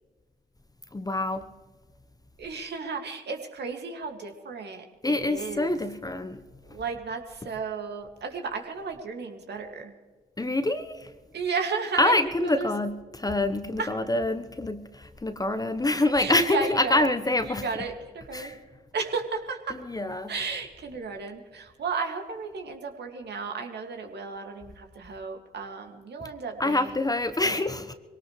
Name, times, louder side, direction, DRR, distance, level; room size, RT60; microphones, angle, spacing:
voice 1, 0.9-1.5 5.0-6.4 10.4-11.1 12.0-17.8 18.3-18.6 19.7-20.4 26.2-26.3 26.6-27.9, left 2 dB, 20° left, 1.0 m, -26 dB
voice 2, 2.4-5.8 6.7-10.0 11.3-12.7 13.8-13.9 16.2-17.1 17.4-18.6 18.9-19.8 20.3-27.0 27.4-27.6, right 5 dB, 55° right, 2.2 m, -34 dB
22.5 x 18.0 x 3.2 m
hypercardioid pair, 45°, 20 cm